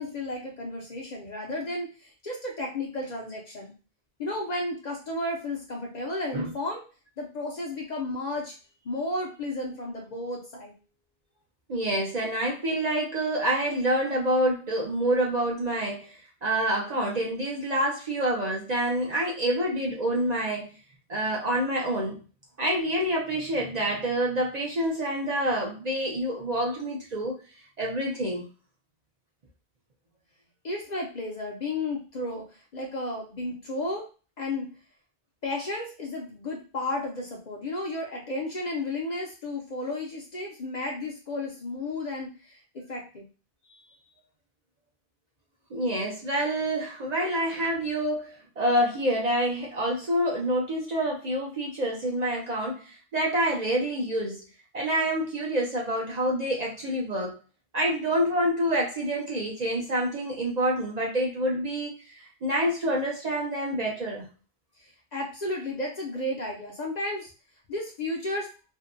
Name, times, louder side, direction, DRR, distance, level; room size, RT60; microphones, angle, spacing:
voice 1, 0.0-3.7 4.2-6.8 7.2-8.5 8.8-10.7 30.6-34.1 34.4-34.7 35.4-43.3 43.7-43.8 65.1-67.3 67.7-68.5, left 2 dB, 50° left, -1 dB, 0.6 m, -33 dB
voice 2, 11.7-20.8 21.1-22.2 22.6-27.4 27.8-28.5 45.7-54.4 54.7-57.4 57.7-64.3, right 1 dB, 50° right, -3 dB, 0.6 m, -27 dB
2.6 x 2.2 x 2.4 m, 0.35 s
omnidirectional pair, 1.1 m